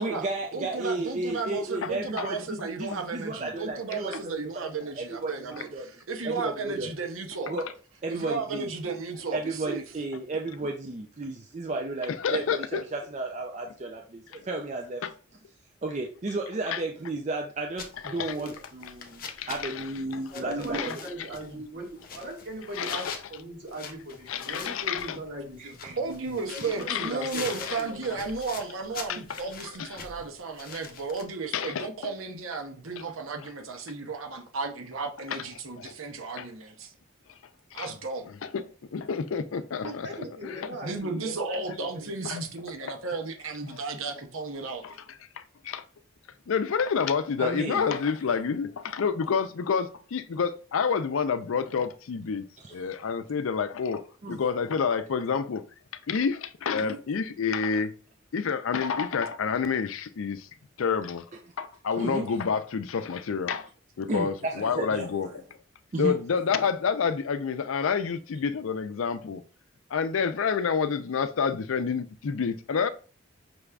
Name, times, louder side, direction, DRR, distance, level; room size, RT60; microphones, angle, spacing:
voice 1, 0.0-4.2 4.5-4.7 5.0-5.9 6.2-6.9 7.5-7.7 8.0-8.7 9.3-15.0 15.8-21.7 25.6-26.0 47.4-47.9 52.6-52.8 54.2-54.4 56.8-57.0 62.0-62.4 64.1-65.3 65.9-66.1, right 2 dB, 35° right, 0.4 m, -33 dB
voice 2, 0.5-7.5 8.1-9.8 25.1-25.2 26.0-36.9 37.7-38.3 40.8-44.8, right 4 dB, 85° right, 0.9 m, -34 dB
voice 3, 1.8-2.3 12.2-12.8 15.0-15.1 16.7-16.8 18.0-18.4 19.3-19.8 20.7-21.0 22.7-23.2 24.3-25.2 26.9-27.3 27.7-27.8 29.1-29.2 29.8-29.9 31.5-31.9 35.3-35.4 35.8-35.9 36.4-36.5 37.7-37.9 38.4-38.6 38.9-40.1 40.4-40.8 42.2-42.4 42.8-42.9 44.8-44.9 45.4-45.8 46.5-52.4 52.7-55.6 56.1-57.9 58.3-60.5 60.8-61.2 61.6-63.7 64.0-65.4 66.0-69.4 69.9-72.9, left 6 dB, 85° left, 0.4 m, -28 dB
sound 1, 17.8-31.2, left 5 dB, 45° left, 0.7 m, -44 dB
voice 4, 20.3-28.2 39.8-41.6 41.9-42.1, right 1 dB, 55° right, 1.8 m, -39 dB
6.0 x 3.3 x 2.4 m
head